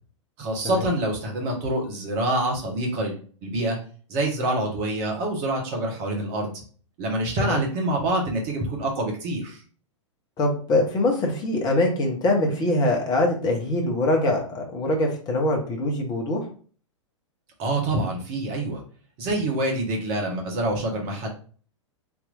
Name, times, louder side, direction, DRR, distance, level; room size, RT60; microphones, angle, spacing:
voice 1, 0.4-3.8 4.1-6.6 7.0-9.6 17.6-18.8 19.2-21.3, right 1 dB, 40° right, 0 dB, 1.4 m, -26 dB
voice 2, 10.4-16.4, left 1 dB, 25° left, 0 dB, 1.1 m, -23 dB
3.5 x 2.9 x 2.6 m, 0.42 s
figure-of-eight pair, 105°, 16 cm